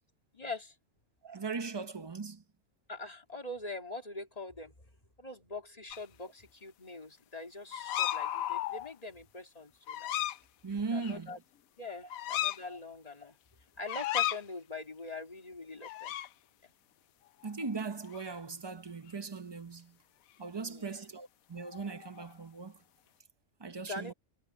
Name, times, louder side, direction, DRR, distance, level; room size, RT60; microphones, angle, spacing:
voice 1, 0.3-0.7 2.9-4.7 5.2-10.1 10.9-11.4 11.8-13.4 13.8-16.2 16.6-16.7 20.5-21.0 23.7-24.1, left 2 dB, 25° left, 2.6 m, -43 dB
voice 2, 1.2-2.4 10.6-11.3 17.4-19.9 20.4-22.8 23.6-24.1, right 4 dB, 25° right, 0.7 m, -39 dB
sound 1, 5.9-6.0 7.7-8.9 9.9-10.4 11.0-11.1 12.1-12.6 13.9-14.4 15.8-16.3 17.5-17.7 18.0-18.3 21.6-22.3, left 13 dB, 80° left, 1.1 m, -34 dB
omnidirectional pair, 1.4 m